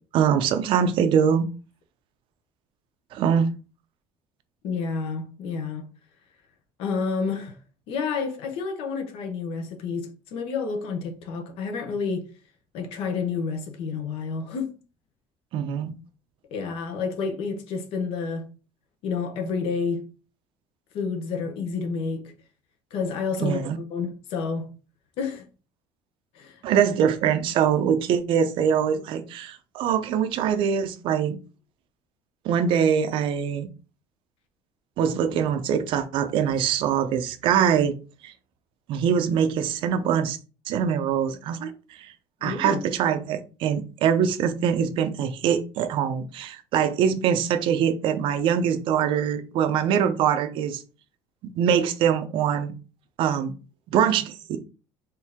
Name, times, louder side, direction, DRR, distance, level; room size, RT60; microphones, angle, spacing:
voice 1, 0.1-1.5 3.1-3.5 15.5-15.9 23.4-23.8 26.6-31.4 32.4-33.7 35.0-37.9 38.2-38.3 38.9-40.4 40.7-41.7 42.0-42.1 42.4-50.8 51.4-52.7 53.2-53.5 53.9-54.6, right 8 dB, 50° right, 0.6 m, -23 dB
voice 2, 4.6-5.9 6.8-7.6 7.9-12.3 12.7-14.8 16.5-18.5 19.0-20.1 20.9-22.3 22.9-23.6 23.9-24.7 25.2-25.4 26.3-26.9 42.4-42.8, left 5 dB, 60° left, 1.0 m, -29 dB
4.4 x 2.7 x 3.5 m
cardioid pair, 150°, 11 cm